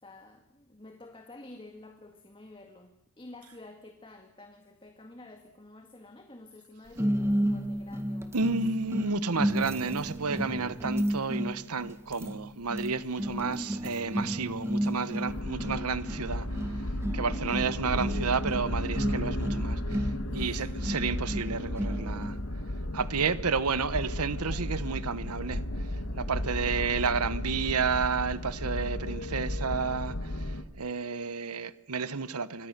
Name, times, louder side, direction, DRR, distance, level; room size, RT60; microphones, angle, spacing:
voice 1, 0.0-8.5 20.3-20.7 26.3-26.7, left 2 dB, 25° left, 2.0 m, -50 dB
sound 1, 7.0-22.4, equal, 10° right, 1.9 m, -33 dB
voice 2, 8.3-16.5 17.1-22.4 22.9-25.6 25.9-32.7, right 5 dB, 85° right, 1.0 m, -31 dB
sound 2, 15.3-30.6, left 1 dB, 70° left, 1.8 m, -34 dB
27.0 x 25.0 x 6.7 m
head